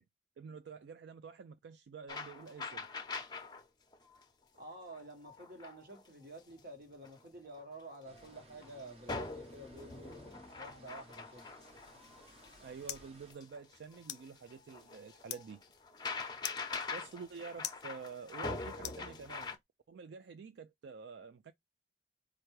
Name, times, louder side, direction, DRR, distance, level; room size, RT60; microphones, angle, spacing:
voice 1, 0.4-2.9 12.6-15.6 16.9-19.6 19.9-21.5, right 5 dB, 80° right, 0.3 m, -48 dB
sound 1, 2.1-3.6 3.9-4.2 4.9-6.0 6.6-6.7 7.0-7.2 7.6-8.8 9.1-19.6, left 4 dB, 25° left, 0.7 m, -44 dB
voice 2, 4.6-11.5, right 1 dB, 55° right, 1.3 m, -50 dB
sound 2, 8.0-13.3, right 1 dB, 35° right, 0.8 m, -60 dB
sound 3, 12.1-19.6, left 13 dB, 70° left, 0.4 m, -49 dB
4.5 x 2.5 x 3.1 m
head